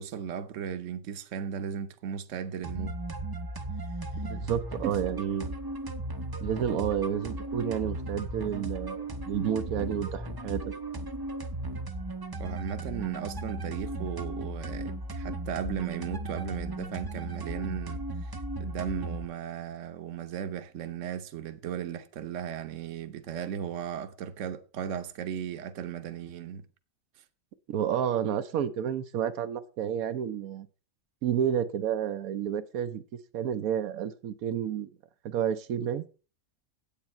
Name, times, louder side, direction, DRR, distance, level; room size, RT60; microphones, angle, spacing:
voice 1, 0.0-2.9 4.8-4.9 12.4-18.3 18.6-26.7, right 8 dB, 65° right, 1.1 m, -36 dB
sound 1, 2.6-19.3, right 2 dB, 30° right, 0.4 m, -36 dB
voice 2, 4.2-5.5 6.4-10.7 27.7-30.7 31.2-33.0 33.3-34.9 35.2-36.1, right 9 dB, 90° right, 1.1 m, -30 dB
8.9 x 8.2 x 4.3 m
omnidirectional pair, 1.4 m